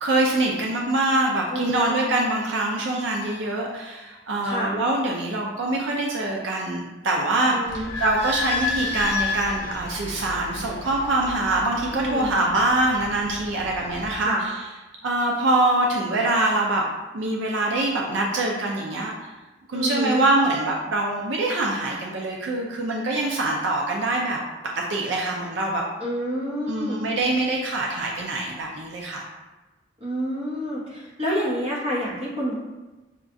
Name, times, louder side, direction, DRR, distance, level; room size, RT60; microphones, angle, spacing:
voice 1, 0.0-14.6 15.0-16.8 17.1-19.1 19.7-24.4 24.8-25.8 26.7-29.2, right 2 dB, 70° right, -1 dB, 0.4 m, -24 dB
voice 2, 1.5-2.0 4.4-4.7 7.5-7.9 11.9-12.3 14.2-14.4 19.7-20.3 26.0-27.0 30.0-32.5, equal, 30° right, -5 dB, 0.9 m, -28 dB
Idling / Squeak, 7.7-14.1, left 4 dB, 60° left, 0.7 m, -32 dB
5.7 x 2.3 x 2.5 m, 1.1 s
head